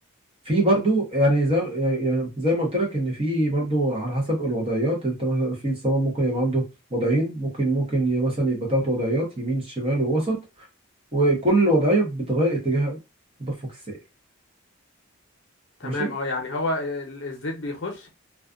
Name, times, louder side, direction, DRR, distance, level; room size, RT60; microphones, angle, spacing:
voice 1, 0.4-10.4 11.1-13.0 13.4-13.5 13.9-14.0 15.8-16.1, right 1 dB, 25° right, 0.8 m, -23 dB
voice 2, 15.8-18.1, left 2 dB, 60° left, 0.7 m, -29 dB
2.4 x 2.4 x 2.4 m
head